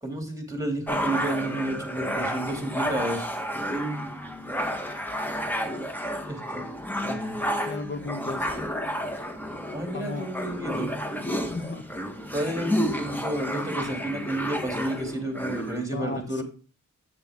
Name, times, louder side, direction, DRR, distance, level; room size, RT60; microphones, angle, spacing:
voice 1, 0.0-3.3 6.3-6.6 7.0-7.4 9.7-10.9 12.3-16.4, right 1 dB, 10° right, 2.7 m, -31 dB
sound 1, 0.9-15.8, equal, 5° left, 1.4 m, -31 dB
voice 2, 7.6-8.5 9.9-10.3 11.4-11.9 15.9-16.4, left 2 dB, 35° left, 1.2 m, -34 dB
8.0 x 6.9 x 3.6 m
wide cardioid pair, 85°, 31 cm